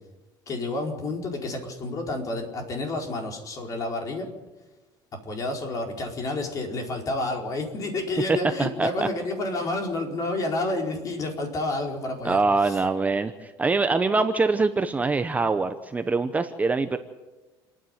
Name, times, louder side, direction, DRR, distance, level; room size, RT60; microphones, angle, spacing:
voice 1, 0.5-4.3 5.2-12.8, left 2 dB, 35° left, 2 dB, 4.6 m, -30 dB
voice 2, 12.2-17.0, right 3 dB, 15° right, 9 dB, 0.9 m, -24 dB
28.5 x 10.0 x 9.3 m, 1.2 s
cardioid pair, 135°, 10 cm